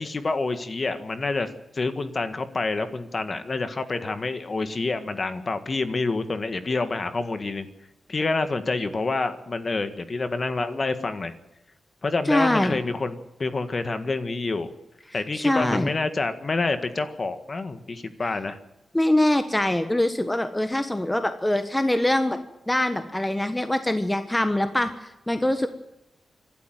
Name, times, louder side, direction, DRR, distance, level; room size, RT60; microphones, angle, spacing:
voice 1, 0.0-1.5 1.7-7.7 8.1-11.3 12.0-14.7 15.1-18.6, left 3 dB, 35° left, 9 dB, 1.7 m, -27 dB
voice 2, 12.3-12.8 15.3-15.9 18.9-22.4 22.7-25.7, left 1 dB, 10° left, 8 dB, 1.2 m, -23 dB
26.0 x 12.5 x 9.0 m, 0.91 s
wide cardioid pair, 125°, 0 cm